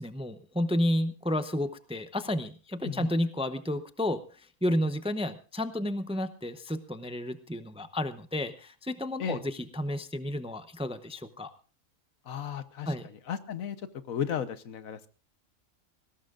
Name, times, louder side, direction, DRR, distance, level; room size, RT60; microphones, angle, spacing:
voice 1, 0.0-4.2 4.6-11.5 12.9-13.1, left 1 dB, 5° right, 10 dB, 0.5 m, -31 dB
voice 2, 12.2-15.1, left 8 dB, 85° left, 12 dB, 1.4 m, -35 dB
21.0 x 17.5 x 2.5 m, 0.37 s
omnidirectional pair, 1.4 m